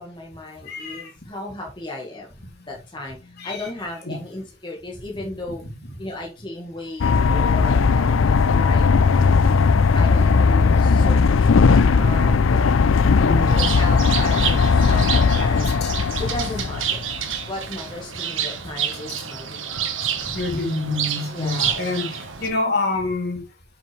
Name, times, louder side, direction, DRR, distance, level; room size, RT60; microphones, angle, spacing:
voice 1, 0.0-2.3 2.7-5.6 6.0-9.5 9.9-12.7 13.3-15.7 16.2-17.2 17.5-19.9 21.3-21.9, left 2 dB, 25° left, 1.8 m, -35 dB
voice 2, 0.7-1.1 3.4-3.7 4.0-4.2 13.0-13.5 15.8-15.9 19.1-19.2 20.2-23.4, left 2 dB, 55° left, 3.0 m, -27 dB
sound 1, 7.0-17.2, left 5 dB, 85° left, 0.5 m, -17 dB
Bird, 13.5-22.5, right 8 dB, 75° right, 1.4 m, -29 dB
8.4 x 6.0 x 3.3 m
head